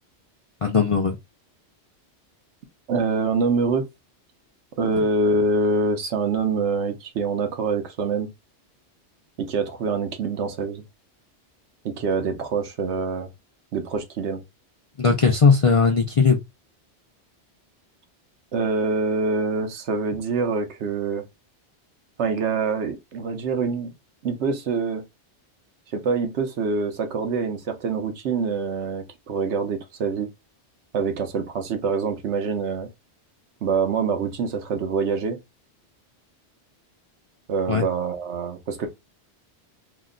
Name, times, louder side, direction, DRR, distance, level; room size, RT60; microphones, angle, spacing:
voice 1, 0.6-1.2 15.0-16.4 37.7-37.8, left 5 dB, 50° left, 0.4 m, -18 dB
voice 2, 2.9-3.9 4.8-8.3 9.4-10.8 11.8-13.3 13.7-14.4 18.5-21.2 22.2-23.9 24.2-25.1 25.9-30.3 30.9-32.9 33.6-35.4 37.5-38.9, right 4 dB, 75° right, 1.0 m, -25 dB
2.8 x 2.1 x 3.6 m
omnidirectional pair, 1.2 m